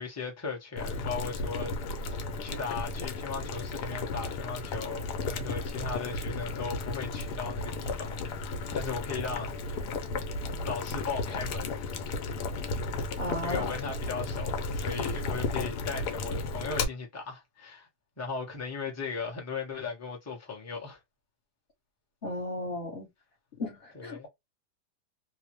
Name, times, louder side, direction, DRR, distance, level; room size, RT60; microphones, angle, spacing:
voice 1, 0.0-9.9 10.6-11.9 13.4-17.9 18.2-21.0 23.9-24.3, left 5 dB, 15° left, 0.6 m, -37 dB
Boiling, 0.8-16.9, left 3 dB, 80° left, 1.2 m, -34 dB
voice 2, 13.2-13.7 22.2-23.1 23.6-23.8 24.0-24.3, left 1 dB, 40° left, 1.2 m, -34 dB
3.0 x 2.1 x 2.9 m
omnidirectional pair, 1.8 m